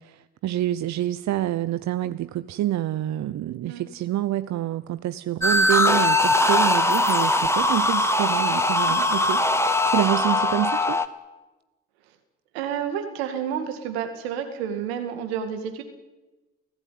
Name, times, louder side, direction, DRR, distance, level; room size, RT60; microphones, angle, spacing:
voice 1, 0.0-11.0, right 13 dB, 65° right, 13 dB, 0.9 m, -27 dB
sound 1, 5.4-11.1, left 2 dB, 10° left, 2.0 m, -21 dB
voice 2, 12.5-15.8, right 8 dB, 85° right, 7 dB, 2.3 m, -30 dB
28.5 x 15.5 x 9.4 m, 1.2 s
hypercardioid pair, 45°, 30 cm